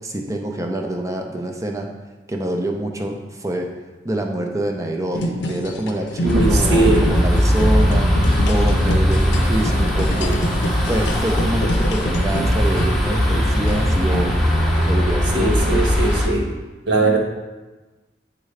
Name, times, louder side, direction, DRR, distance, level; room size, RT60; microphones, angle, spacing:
voice 1, 0.0-1.9 2.3-3.7 4.0-14.5 14.9-15.9, right 1 dB, 20° right, 2 dB, 0.6 m, -26 dB
sound 1, 5.1-15.2, equal, 90° left, 0.6 m, -27 dB
sound 2, 6.2-16.3, equal, ahead, 1.0 m, -19 dB
voice 2, 6.2-7.0 15.3-16.4 16.9-17.2, right 2 dB, 80° right, -1 dB, 1.2 m, -19 dB
9.2 x 3.7 x 3.3 m, 1.2 s
head